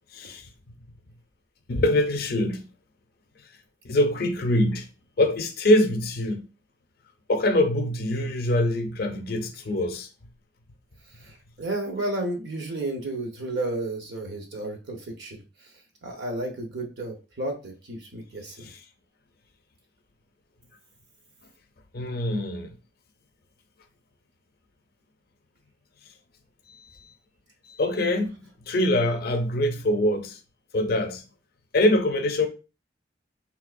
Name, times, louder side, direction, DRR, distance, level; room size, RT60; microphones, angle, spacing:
voice 1, 0.1-0.5 1.7-2.7 3.8-4.9 5.2-6.5 7.3-10.1 18.6-18.8 21.9-22.8 26.7-26.8 27.7-28.4 28.6-30.4 30.7-31.2 31.7-32.5, left 1 dB, 55° left, 0.5 m, -24 dB
voice 2, 11.2-15.4 16.0-18.7, right 2 dB, 65° right, 1.0 m, -32 dB
3.6 x 2.8 x 2.5 m
head